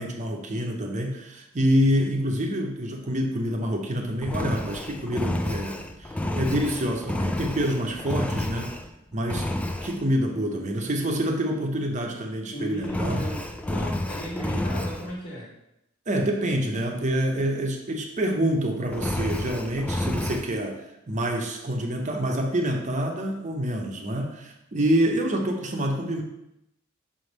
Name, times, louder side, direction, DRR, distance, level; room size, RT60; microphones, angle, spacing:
voice 1, 0.0-8.7 9.1-9.5 9.8-13.2 16.1-26.2, equal, 35° right, 2 dB, 0.7 m, -27 dB
Engine, 4.2-8.9 9.3-10.0 12.8-15.1 18.9-20.5, left 1 dB, 5° left, 0.3 m, -30 dB
voice 2, 12.5-15.5, equal, 50° left, -6 dB, 1.6 m, -35 dB
5.5 x 3.3 x 5.3 m, 0.85 s
head